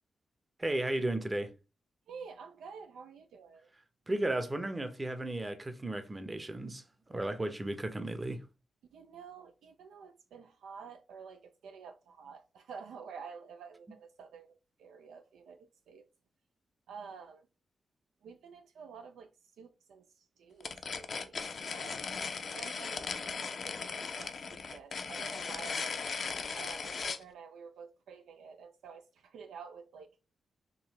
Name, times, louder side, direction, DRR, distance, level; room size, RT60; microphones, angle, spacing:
voice 1, 0.6-1.5 4.1-6.8 7.1-8.4, right 1 dB, 25° right, 0.8 m, -34 dB
voice 2, 2.1-3.7 8.9-16.1 16.9-17.5 18.2-19.3 19.6-21.4 21.6-22.1 22.5-25.9 26.5-30.1, right 6 dB, 80° right, 0.3 m, -50 dB
sound 1, 20.6-27.2, left 5 dB, 60° left, 0.5 m, -38 dB
3.8 x 2.6 x 3.0 m
supercardioid pair, 40°, 0 cm